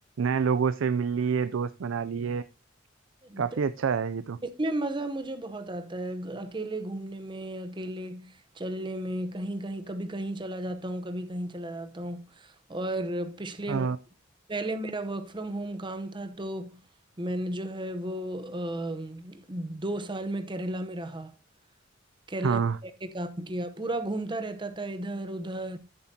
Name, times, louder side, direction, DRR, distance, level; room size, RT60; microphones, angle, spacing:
voice 1, 0.2-2.4 3.4-4.4 13.7-14.0 22.4-22.8, right 6 dB, 85° right, 0.4 m, -27 dB
voice 2, 4.6-13.9 14.5-16.8 17.2-21.3 22.3-25.8, right 1 dB, 25° right, 0.9 m, -34 dB
13.0 x 7.3 x 2.8 m
head